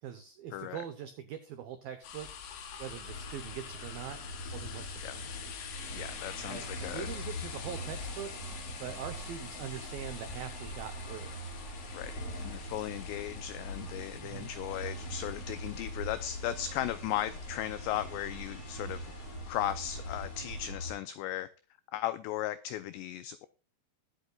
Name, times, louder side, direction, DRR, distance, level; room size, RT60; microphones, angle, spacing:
voice 1, 0.0-2.3 2.8-4.2 4.5-5.3 6.5-11.3 14.2-14.5, right 9 dB, 85° right, 9 dB, 2.1 m, -43 dB
sound 1, 2.0-20.7, left 7 dB, 70° left, 4.0 m, -48 dB
sound 2, 3.1-20.9, equal, 30° left, 6.4 m, -42 dB
voice 2, 5.9-7.1 11.9-19.1 19.5-21.5 21.9-23.5, left 13 dB, 85° left, 14 dB, 2.4 m, -36 dB
21.0 x 8.2 x 2.4 m, 0.33 s
omnidirectional pair, 5.7 m